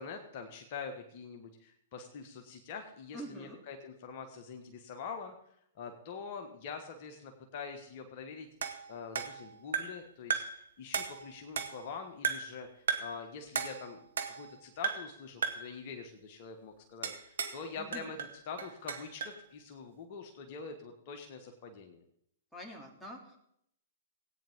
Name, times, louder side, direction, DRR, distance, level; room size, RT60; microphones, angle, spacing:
voice 1, 0.0-5.3 5.7-8.5 8.9-10.4 10.8-14.1 14.4-18.2 18.5-22.0, left 5 dB, 45° left, 4 dB, 1.5 m, -44 dB
voice 2, 3.1-3.6 17.8-18.1 22.5-23.4, equal, ahead, -2 dB, 2.8 m, -45 dB
sound 1, 8.6-10.1 10.3-10.6 10.9-11.9 12.2-12.6 12.9-13.2 13.6-14.6 14.8-15.2 15.4-15.7 17.0-17.6 17.9-19.4, right 6 dB, 70° right, 1.3 m, -36 dB
18.0 x 9.1 x 3.7 m, 0.73 s
figure-of-eight pair, 115°, 0 cm